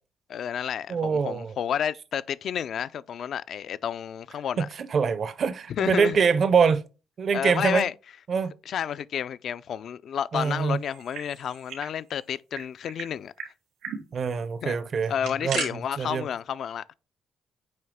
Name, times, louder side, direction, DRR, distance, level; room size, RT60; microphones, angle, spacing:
voice 1, 0.3-4.7 5.7-6.2 7.3-7.9 8.7-13.3 14.6-14.8 15.1-16.9, left 8 dB, 65° left, 0.3 m, -31 dB
voice 2, 0.9-1.5 4.6-6.8 7.2-7.9 8.3-8.5 10.3-10.8 14.1-15.1 15.4-16.3, right 6 dB, 55° right, 0.5 m, -24 dB
sound 1, 10.8-11.9 12.2-12.3 12.5-13.1 13.4-13.5 13.8-14.0 15.0-15.7, right 6 dB, 90° right, 3.2 m, -35 dB
8.7 x 3.2 x 3.5 m
cardioid pair, 90°, 0 cm